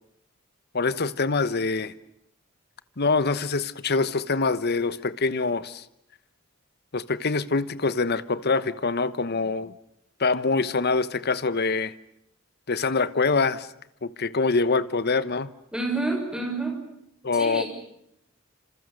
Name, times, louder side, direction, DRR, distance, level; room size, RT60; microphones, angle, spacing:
voice 1, 0.7-1.9 3.0-5.8 6.9-9.7 10.2-11.9 12.7-13.7 14.0-15.5 17.2-17.6, left 4 dB, 50° left, 1.1 m, -24 dB
voice 2, 15.7-16.8 17.3-17.6, right 2 dB, 5° right, 6.6 m, -28 dB
27.5 x 27.0 x 6.7 m
head